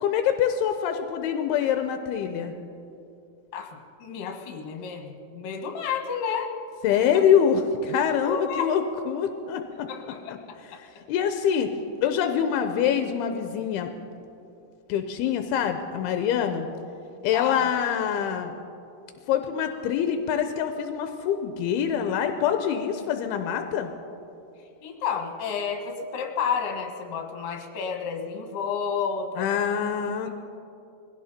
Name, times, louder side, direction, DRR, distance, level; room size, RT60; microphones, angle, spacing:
voice 1, 0.0-2.5 6.8-9.9 10.8-11.7 12.0-13.9 14.9-16.7 17.2-18.5 19.3-23.9 29.4-30.3, left 8 dB, 85° left, 7 dB, 2.6 m, -25 dB
voice 2, 3.5-6.5 8.2-8.7 9.9-10.4 10.7-10.8 17.3-17.6 24.8-29.5, left 6 dB, 65° left, 3 dB, 2.8 m, -31 dB
21.0 x 16.0 x 4.3 m, 2.6 s
omnidirectional pair, 4.7 m